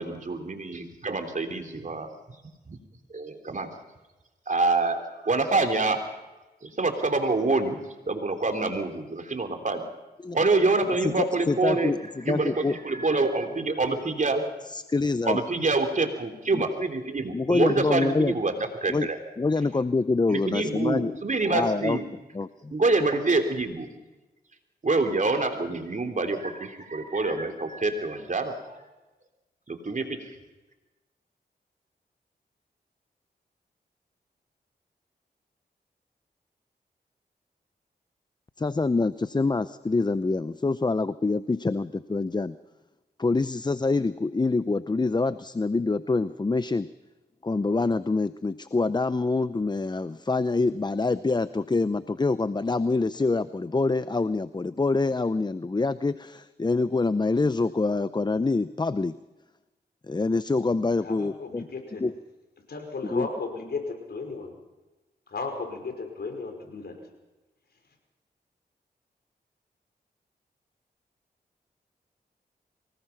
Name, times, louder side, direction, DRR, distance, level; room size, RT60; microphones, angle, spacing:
voice 1, 0.0-2.1 2.7-2.8 3.1-3.7 4.5-6.0 6.6-7.8 8.1-9.8 10.3-11.9 12.2-14.5 15.2-19.2 20.3-22.0 22.7-23.9 24.8-28.8 29.7-30.3, right 3 dB, 45° right, 6 dB, 3.3 m, -26 dB
voice 2, 11.0-12.8 14.7-15.4 16.5-16.7 17.3-18.3 18.9-19.1 19.4-21.1 21.5-22.0 22.3-22.7 38.6-42.6 43.2-46.9 47.4-59.2 60.1-61.7 62.0-62.1 63.1-63.3, left 3 dB, 25° left, 15 dB, 0.6 m, -26 dB
voice 3, 61.0-62.0 62.7-64.5 65.3-66.9, left 4 dB, 65° left, 4 dB, 5.3 m, -35 dB
24.0 x 19.0 x 5.9 m, 1.1 s
cardioid pair, 55°, 18 cm